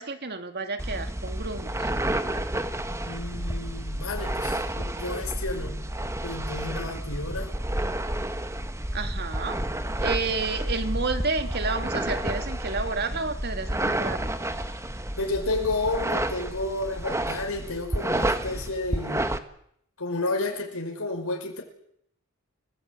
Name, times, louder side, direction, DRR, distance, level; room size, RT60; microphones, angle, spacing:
voice 1, 0.0-1.9 8.9-9.6 10.0-14.3, right 4 dB, 50° right, 7 dB, 2.4 m, -30 dB
sound 1, 0.8-19.4, right 1 dB, 15° right, 1.4 m, -30 dB
voice 2, 3.0-5.8 6.2-7.5 15.2-19.3 20.0-21.6, left 2 dB, 80° left, 2 dB, 5.3 m, -31 dB
29.5 x 18.0 x 8.4 m, 0.73 s
head